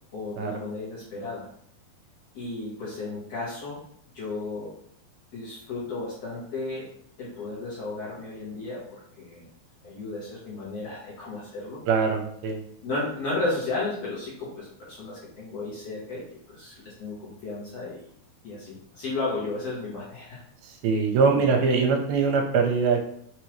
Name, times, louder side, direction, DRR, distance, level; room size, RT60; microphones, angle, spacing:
voice 1, 0.1-1.5 2.3-3.8 4.1-4.7 5.3-6.9 7.2-9.4 9.8-11.8 12.8-18.0 18.4-20.4 21.2-21.5, left 2 dB, 65° left, -7 dB, 1.8 m, -34 dB
voice 2, 11.9-12.6 20.6-23.0, right 5 dB, 90° right, 2 dB, 2.5 m, -23 dB
5.9 x 2.8 x 3.1 m, 0.67 s
omnidirectional pair, 4.4 m